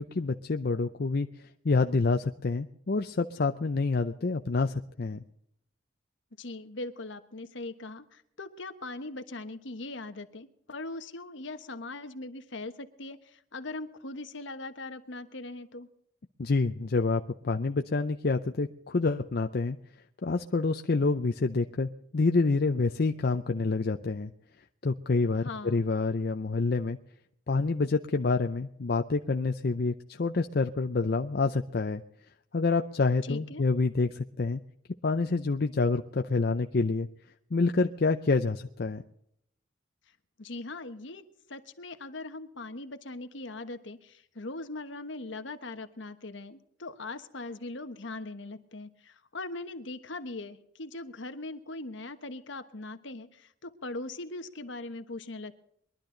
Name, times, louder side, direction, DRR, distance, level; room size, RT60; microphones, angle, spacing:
voice 1, 0.0-5.2 16.4-19.8 20.2-24.3 24.8-27.0 27.5-32.0 32.5-34.6 35.0-37.1 37.5-39.0, left 3 dB, 50° left, 6 dB, 0.5 m, -27 dB
voice 2, 6.4-15.9 25.4-25.9 33.2-33.6 40.4-41.2 41.5-55.6, left 2 dB, 65° left, 9 dB, 1.2 m, -40 dB
22.0 x 12.0 x 3.9 m, 0.73 s
head